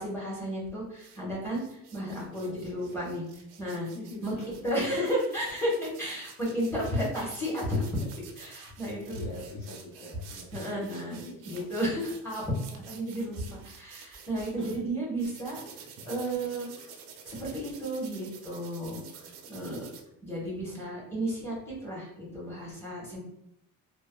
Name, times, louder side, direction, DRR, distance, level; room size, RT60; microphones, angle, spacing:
voice 1, 0.0-3.2 3.6-3.9 4.2-8.1 8.4-9.2 10.5-15.6 16.0-16.9 17.2-19.2 19.5-19.9 20.2-23.2, equal, 5° left, -5 dB, 1.0 m, -33 dB
sound 1, 0.9-1.2 1.5-14.8 15.2-20.0, right 6 dB, 85° right, 0.6 m, -50 dB
voice 2, 2.3-3.2 3.9-4.5 9.2-11.6 14.6-14.8, left 1 dB, 75° left, -4 dB, 0.7 m, -45 dB
3.3 x 2.1 x 2.2 m, 0.79 s
cardioid pair, 135°, 36 cm